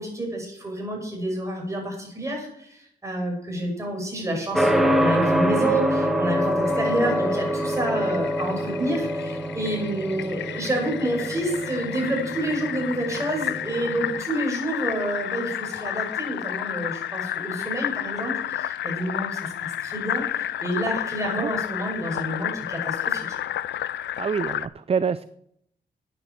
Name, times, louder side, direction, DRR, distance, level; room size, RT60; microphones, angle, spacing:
voice 1, 0.0-23.4, right 1 dB, 15° right, 0 dB, 6.2 m, -29 dB
sound 1, 4.5-14.2, equal, ahead, 1.8 m, -26 dB
Fill (with liquid), 6.6-24.7, left 11 dB, 80° left, 0.5 m, -31 dB
voice 2, 24.2-25.2, right 6 dB, 35° right, 16 dB, 0.4 m, -26 dB
10.0 x 9.8 x 7.4 m, 0.74 s
cardioid pair, 85°, 18 cm